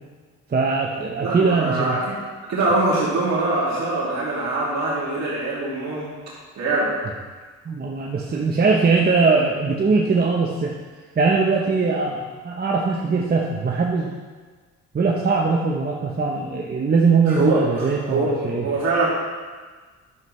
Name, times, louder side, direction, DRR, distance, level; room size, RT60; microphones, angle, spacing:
voice 1, 0.5-2.0 7.7-10.7 11.2-14.1 14.9-18.7, right 4 dB, 30° right, -2 dB, 0.9 m, -21 dB
voice 2, 1.2-2.2 2.5-6.1 6.6-6.9 17.3-19.1, right 2 dB, 65° right, -6 dB, 2.5 m, -23 dB
11.0 x 7.2 x 3.2 m, 1.4 s
cardioid pair, 90°, 30 cm